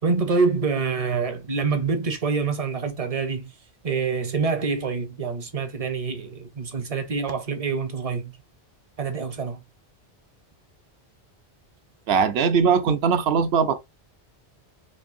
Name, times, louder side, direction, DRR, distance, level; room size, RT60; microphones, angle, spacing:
voice 1, 0.0-3.5 3.8-8.3 9.0-9.6, right 5 dB, 40° right, 0.6 m, -26 dB
voice 2, 12.1-13.8, right 6 dB, 70° right, 0.8 m, -20 dB
4.3 x 2.6 x 2.5 m
omnidirectional pair, 1.1 m